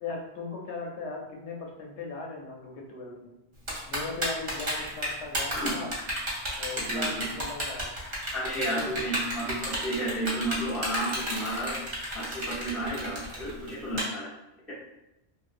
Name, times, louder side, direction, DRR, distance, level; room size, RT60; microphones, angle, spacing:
voice 1, 0.0-3.4 3.9-5.9 6.6-7.9 8.4-8.9, left 3 dB, 80° left, 0 dB, 0.9 m, -38 dB
Typing, 3.7-14.0, right 1 dB, 45° right, 0.8 m, -32 dB
voice 2, 6.8-7.3 8.1-11.8 12.1-14.3 14.7-14.8, right 1 dB, ahead, -9 dB, 0.6 m, -32 dB
2.6 x 2.1 x 2.4 m, 0.90 s
omnidirectional pair, 1.1 m